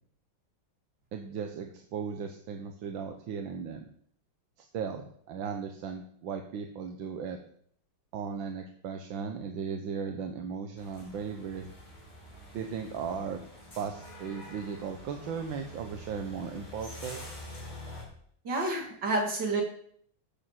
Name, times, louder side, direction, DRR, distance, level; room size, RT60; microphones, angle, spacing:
voice 1, 1.1-3.9 4.6-7.4 8.1-11.7 12.5-13.4 13.8-17.2, right 6 dB, 85° right, 5 dB, 1.8 m, -37 dB
sound 1, 10.8-18.0, left 1 dB, 25° left, 3.4 m, -46 dB
voice 2, 18.4-19.6, right 2 dB, 65° right, 1 dB, 3.4 m, -29 dB
12.0 x 7.2 x 7.6 m, 0.64 s
omnidirectional pair, 2.0 m